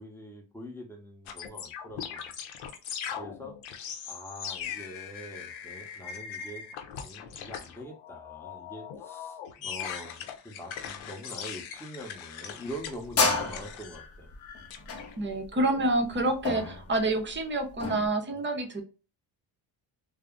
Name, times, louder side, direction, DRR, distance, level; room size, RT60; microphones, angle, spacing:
voice 1, 0.0-2.3 3.2-3.6 4.1-6.6 7.0-14.3, equal, 5° left, 1 dB, 0.8 m, -44 dB
sound 1, 1.3-15.2, left 8 dB, 85° left, 0.6 m, -40 dB
sound 2, 12.6-18.1, left 4 dB, 30° left, 0.6 m, -31 dB
voice 2, 15.2-18.8, right 2 dB, 25° right, 4 dB, 0.7 m, -28 dB
2.3 x 2.0 x 3.6 m, 0.34 s
cardioid pair, 90°, 46 cm